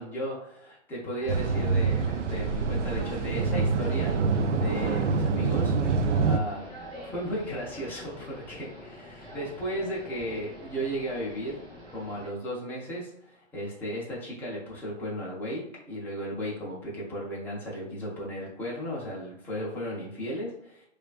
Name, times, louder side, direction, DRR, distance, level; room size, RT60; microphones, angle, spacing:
voice 1, 0.0-6.7 7.0-11.6 11.9-20.8, equal, 5° left, -5 dB, 0.6 m, -35 dB
sound 1, 1.2-12.3, equal, 10° right, 1.0 m, -45 dB
sound 2, 1.3-6.4, right 4 dB, 85° right, 0.5 m, -26 dB
4.8 x 2.5 x 2.4 m, 0.75 s
hypercardioid pair, 145°, 35 cm